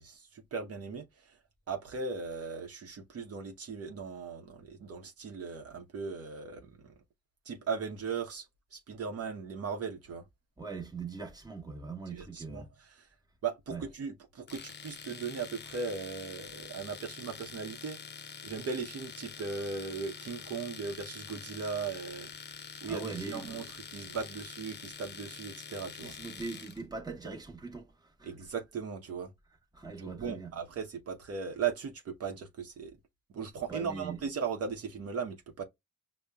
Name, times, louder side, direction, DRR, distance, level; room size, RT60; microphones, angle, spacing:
voice 1, 0.0-1.4 1.7-6.9 7.4-8.5 8.7-10.2 12.1-13.1 13.4-18.0 18.4-22.3 22.8-26.1 28.2-29.3 30.0-33.0 33.3-35.6, right 5 dB, 50° right, 0.8 m, -38 dB
voice 2, 10.6-12.7 13.7-13.8 22.9-23.5 26.0-28.3 29.7-30.5 33.7-34.2, right 4 dB, 15° right, 1.1 m, -41 dB
Domestic sounds home sounds, 14.5-26.8, left 6 dB, 35° left, 0.6 m, -46 dB
5.3 x 2.1 x 2.3 m
cardioid pair, 90°, 30 cm